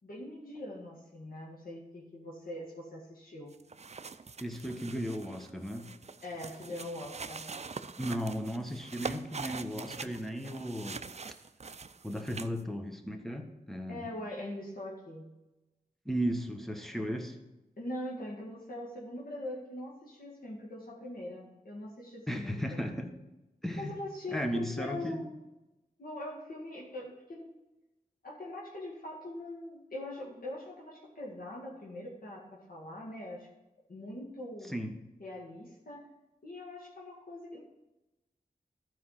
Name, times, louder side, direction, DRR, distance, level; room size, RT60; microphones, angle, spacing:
voice 1, 0.0-3.5 6.2-7.5 13.9-15.3 17.8-22.9 23.8-25.3 26.0-27.5 28.2-33.5 33.9-34.7 35.2-36.1 36.4-37.6, left 1 dB, 70° left, -4 dB, 2.0 m, -42 dB
sound 1, 3.5-12.6, right 4 dB, 45° right, 0.5 m, -44 dB
voice 2, 4.4-5.9 8.0-11.0 12.0-14.1 16.0-17.4 22.3-23.1 23.6-24.0 24.3-25.2 34.7-34.9, equal, ahead, 4 dB, 1.4 m, -35 dB
13.0 x 4.8 x 5.7 m, 1.0 s
cardioid pair, 50°, 16 cm